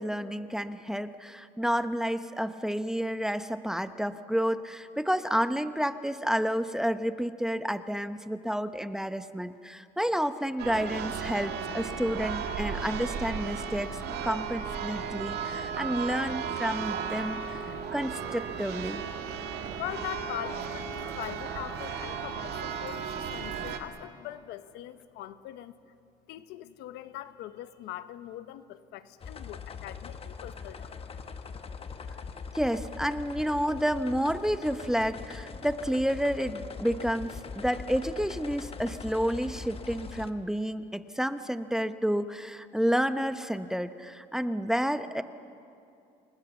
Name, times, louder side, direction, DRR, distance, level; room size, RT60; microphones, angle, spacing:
voice 1, 0.0-17.6 17.9-19.0 32.5-45.2, equal, 5° right, 11 dB, 0.8 m, -30 dB
Church bell, 10.6-23.8, right 6 dB, 75° right, 2.1 m, -35 dB
voice 2, 19.8-25.7 26.3-31.2, left 13 dB, 90° left, 12 dB, 1.0 m, -41 dB
sound 1, 29.2-40.3, left 5 dB, 35° left, 1.2 m, -42 dB
28.0 x 21.5 x 7.1 m, 2.6 s
cardioid pair, 110°, 17 cm